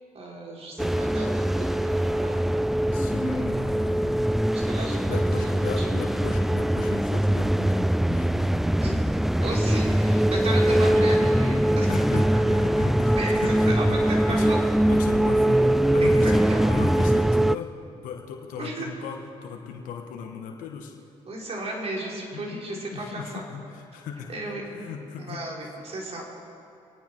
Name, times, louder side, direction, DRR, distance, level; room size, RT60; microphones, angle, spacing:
voice 1, 0.1-2.4 4.5-5.0 5.4-6.1 8.8-11.9 13.2-14.6 16.0-16.1 16.5-16.7 18.6-18.9 21.3-23.4 24.3-24.6 25.2-26.2, right 1 dB, 50° right, -2 dB, 3.7 m, -34 dB
sound 1, 0.8-17.6, right 1 dB, ahead, 0.3 m, -22 dB
voice 2, 2.9-4.2 5.1-8.7 9.5-9.6 11.9-14.0 14.3-14.5 14.9-17.7 18.0-21.0 22.3-22.6 22.9-24.4 24.6-25.4, left 6 dB, 85° left, 2 dB, 1.2 m, -37 dB
25.0 x 9.4 x 4.5 m, 2.8 s
supercardioid pair, 70°, 13 cm